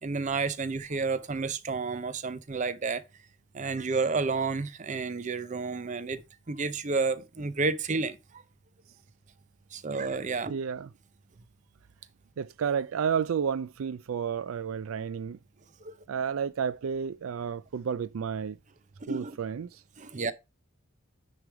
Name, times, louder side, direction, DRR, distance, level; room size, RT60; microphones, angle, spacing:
voice 1, 0.0-3.0 3.5-6.2 6.5-8.4 9.7-10.6 15.8-16.0 19.0-19.4 20.0-20.3, right 4 dB, 35° right, 0.6 m, -31 dB
voice 2, 10.5-10.9 12.4-15.4 16.1-18.6 19.1-19.7, right 7 dB, 80° right, 0.4 m, -31 dB
9.7 x 3.4 x 4.6 m
head